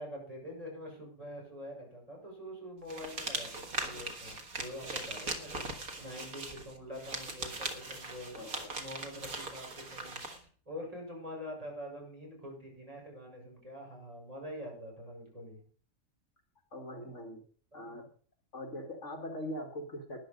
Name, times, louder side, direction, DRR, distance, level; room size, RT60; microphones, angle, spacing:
voice 1, 0.0-8.4 8.7-10.2 10.7-15.6 17.0-17.1 17.7-18.0, equal, 25° right, -1 dB, 6.3 m, -45 dB
sound 1, 2.9-10.4, right 3 dB, 75° right, 2.2 m, -40 dB
voice 2, 8.4-8.8 16.7-17.4 17.7-18.0 18.5-20.2, left 1 dB, 55° left, 4 dB, 2.1 m, -41 dB
13.0 x 10.5 x 5.2 m, 0.43 s
omnidirectional pair, 1.5 m